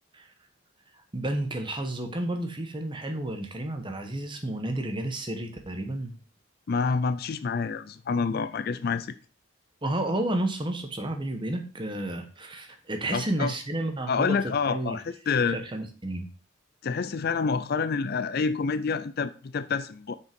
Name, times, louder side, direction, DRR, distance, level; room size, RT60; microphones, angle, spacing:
voice 1, 0.9-6.1 9.8-15.0 15.5-16.3, right 1 dB, 25° right, 1.1 m, -31 dB
voice 2, 6.7-9.1 13.1-13.5 14.1-15.6 16.8-20.1, left 5 dB, 45° left, 0.4 m, -28 dB
6.5 x 5.3 x 5.2 m
head